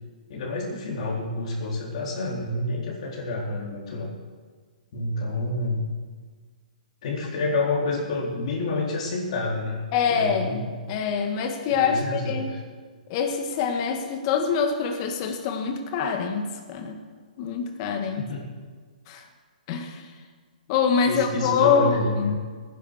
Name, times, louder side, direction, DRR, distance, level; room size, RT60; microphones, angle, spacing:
voice 1, 0.3-4.1 4.9-5.8 7.0-10.7 11.7-12.6 18.1-18.5 21.1-22.4, left 2 dB, 50° left, -3 dB, 4.0 m, -28 dB
voice 2, 9.9-12.5 13.1-17.0 17.4-18.3 19.1-19.3 19.7-20.1 20.7-22.3, left 6 dB, 35° left, 5 dB, 2.0 m, -25 dB
16.5 x 11.0 x 6.6 m, 1.5 s
hypercardioid pair, 155°, 5 cm